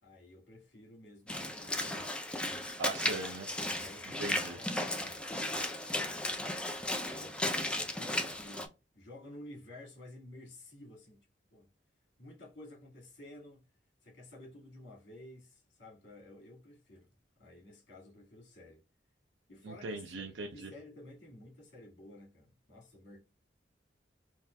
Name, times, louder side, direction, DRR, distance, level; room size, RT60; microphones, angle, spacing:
voice 1, 0.0-2.0 3.6-5.3 7.2-11.3 11.5-11.7 12.2-13.6 14.0-17.1 17.4-18.8 19.5-23.2, left 1 dB, 70° left, 1.7 m, -53 dB
Walk footsteps / Splash splatter, 1.3-8.7, left 1 dB, 5° left, 0.4 m, -35 dB
voice 2, 2.8-3.5 4.2-4.6 19.6-20.7, right 2 dB, 80° right, 0.5 m, -39 dB
5.4 x 2.4 x 2.2 m
head